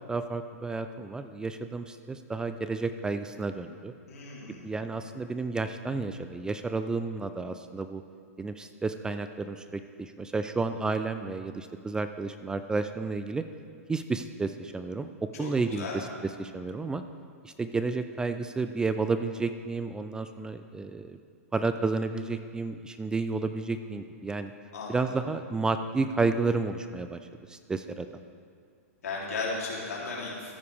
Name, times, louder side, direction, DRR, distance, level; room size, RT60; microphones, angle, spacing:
voice 1, 0.1-3.9 4.6-8.0 8.4-13.4 13.9-16.1 16.4-17.0 17.4-21.2 21.5-24.5 24.9-27.2 27.5-28.1, right 3 dB, 10° right, 9 dB, 0.3 m, -31 dB
voice 2, 4.1-4.7 15.4-16.0 24.7-25.2 29.0-30.5, left 3 dB, 80° left, -4 dB, 3.1 m, -35 dB
14.0 x 9.3 x 3.4 m, 2.2 s
hypercardioid pair, 125°, 8 cm